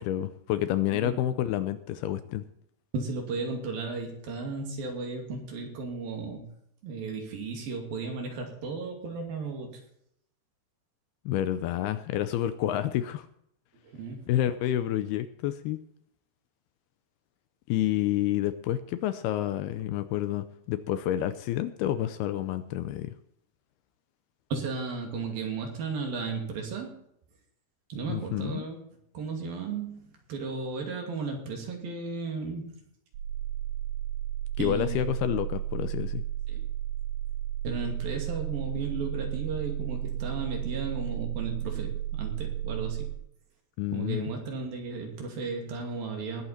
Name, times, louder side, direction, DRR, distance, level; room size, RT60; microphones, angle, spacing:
voice 1, 0.0-2.4 11.3-13.3 14.3-15.8 17.7-23.1 28.1-28.6 34.6-36.2 43.8-44.3, left 12 dB, 80° left, 12 dB, 2.5 m, -29 dB
voice 2, 2.9-6.5 6.8-9.8 13.8-14.3 24.5-26.9 27.9-28.8 29.1-32.8 34.6-35.1 36.5-36.6 37.6-43.1 43.9-46.4, right 4 dB, 60° right, 2 dB, 4.2 m, -35 dB
sound 1, 33.1-43.2, right 12 dB, 85° right, 3.2 m, -33 dB
20.0 x 8.5 x 4.4 m, 0.72 s
omnidirectional pair, 4.9 m